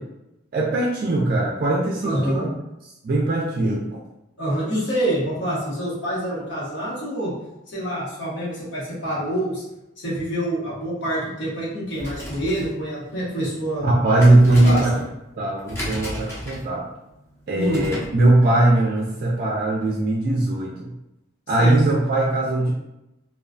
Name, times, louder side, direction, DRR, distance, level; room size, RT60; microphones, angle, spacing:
voice 1, 0.5-2.4 3.0-3.8 13.8-14.9 15.4-16.9 17.5-20.9 21.5-22.7, right 2 dB, 50° right, -3 dB, 0.3 m, -19 dB
voice 2, 2.0-2.5 3.6-3.7 4.4-7.3 7.7-9.6 10.0-13.9 14.6-14.8 17.5-17.8 21.6-21.8, right 1 dB, 75° left, -7 dB, 1.0 m, -26 dB
sound 1, 11.8-18.2, left 1 dB, 15° left, 0.5 m, -35 dB
2.3 x 2.2 x 2.4 m, 0.91 s
head